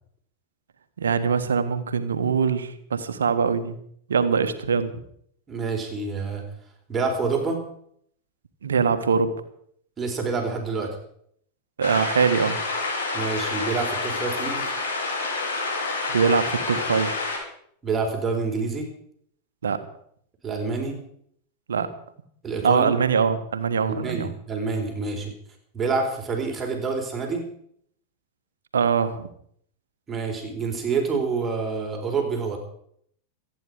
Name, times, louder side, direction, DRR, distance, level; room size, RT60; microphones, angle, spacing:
voice 1, 1.0-3.8 4.1-4.9 8.6-9.3 11.8-12.6 16.1-17.3 19.6-19.8 21.7-21.9 22.6-24.3 28.7-29.3, right 6 dB, 70° right, 10 dB, 1.5 m, -23 dB
voice 2, 5.5-6.4 6.9-7.6 10.0-10.9 13.1-14.7 17.8-18.9 20.4-20.9 22.4-22.9 24.0-25.3 25.7-27.4 30.1-32.6, right 4 dB, 20° right, 1 dB, 4.2 m, -27 dB
sound 1, 11.8-17.4, left 3 dB, 60° left, 5.5 m, -28 dB
26.5 x 9.4 x 5.1 m, 0.67 s
figure-of-eight pair, 90°, 0 cm